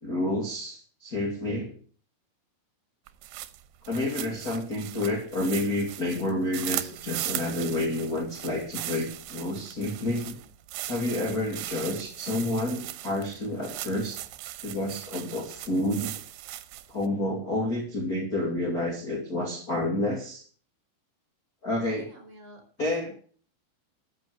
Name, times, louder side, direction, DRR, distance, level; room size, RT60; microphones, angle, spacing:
voice 1, 0.0-1.7 3.9-10.4 10.9-14.2 14.6-16.1 16.9-20.4 21.6-22.1 22.8-23.1, left 1 dB, 25° left, -2 dB, 2.4 m, -29 dB
sound 1, 3.1-17.1, right 15 dB, 85° right, 2.8 m, -38 dB
voice 2, 21.9-23.2, right 1 dB, 30° right, 3 dB, 4.0 m, -51 dB
13.5 x 8.1 x 6.4 m, 0.42 s
omnidirectional pair, 4.7 m